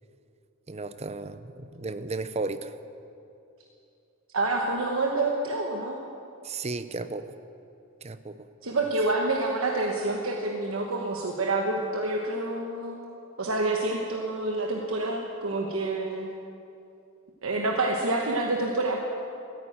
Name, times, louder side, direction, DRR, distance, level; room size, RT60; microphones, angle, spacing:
voice 1, 0.7-2.8 6.4-7.3 8.0-8.5, right 3 dB, 30° right, 11 dB, 0.6 m, -34 dB
voice 2, 4.3-6.0 8.6-13.0 13.4-16.3 17.4-19.0, right 2 dB, 75° right, 0 dB, 1.2 m, -27 dB
14.5 x 9.6 x 8.9 m, 2.7 s
head